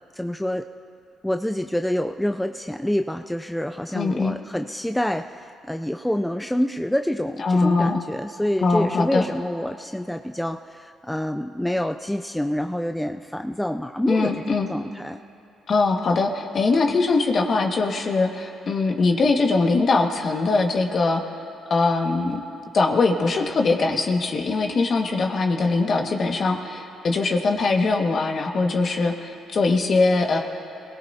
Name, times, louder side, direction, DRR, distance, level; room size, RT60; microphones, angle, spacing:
voice 1, 0.1-0.7 1.2-15.2, left 1 dB, 5° left, 6 dB, 0.5 m, -27 dB
voice 2, 3.9-4.4 7.4-8.0 8.6-9.2 14.1-14.7 15.7-21.2 21.7-22.4 22.7-30.4, left 3 dB, 50° left, 2 dB, 1.8 m, -21 dB
26.5 x 18.0 x 2.8 m, 2.7 s
supercardioid pair, 60°, 0 cm